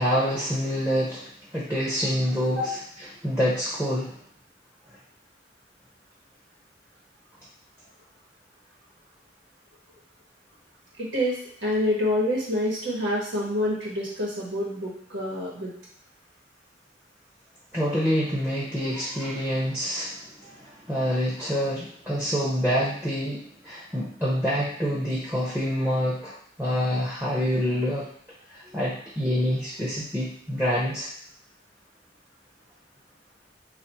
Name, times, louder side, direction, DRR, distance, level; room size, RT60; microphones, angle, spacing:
voice 1, 0.0-2.8 3.2-4.2 17.7-28.1 28.5-31.1, equal, 10° right, -6 dB, 0.6 m, -27 dB
voice 2, 11.0-15.7, left 1 dB, 85° right, -4 dB, 1.2 m, -27 dB
3.3 x 2.4 x 4.2 m, 0.66 s
head